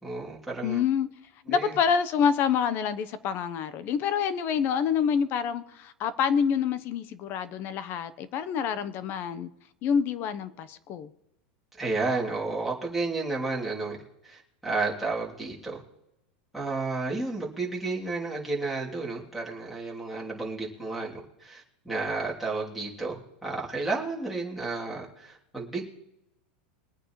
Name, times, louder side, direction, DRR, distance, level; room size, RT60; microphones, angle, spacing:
voice 1, 0.0-0.8 1.5-1.8 11.8-14.0 14.2-15.8 16.5-25.8, right 3 dB, ahead, 3.1 m, -32 dB
voice 2, 0.6-1.1 1.5-9.5 9.8-11.1, left 7 dB, 45° left, 1.0 m, -27 dB
23.0 x 9.0 x 3.2 m
supercardioid pair, 130°, 5 cm